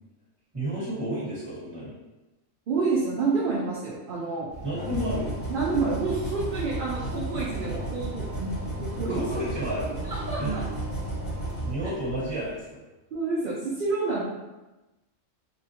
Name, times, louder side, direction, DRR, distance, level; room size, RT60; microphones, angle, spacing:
voice 1, 0.5-1.9 4.6-5.3 7.6-7.8 9.1-9.9 10.4-10.6 11.6-12.8, right 1 dB, 20° right, -9 dB, 1.4 m, -31 dB
voice 2, 2.7-4.5 5.5-8.5 8.8-9.2 10.0-10.6 13.1-14.2, right 4 dB, 55° right, -6 dB, 0.6 m, -28 dB
sound 1, 4.5-12.5, right 1 dB, 65° left, 2.1 m, -33 dB
3.6 x 2.3 x 2.8 m, 1.1 s
omnidirectional pair, 1.3 m